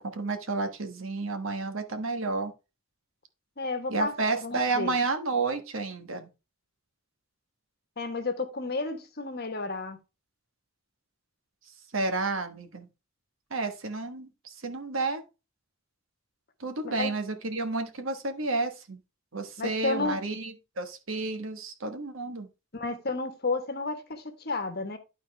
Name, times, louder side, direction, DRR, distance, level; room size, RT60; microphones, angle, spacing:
voice 1, 0.0-2.5 3.9-6.3 11.9-12.9 13.5-15.2 16.6-19.0 19.3-22.5, right 3 dB, 80° right, 1.4 m, -31 dB
voice 2, 3.6-4.1 4.4-4.9 8.0-10.0 16.8-17.1 19.6-20.2 22.7-25.0, left 3 dB, 50° left, 1.3 m, -32 dB
12.0 x 4.2 x 3.4 m
head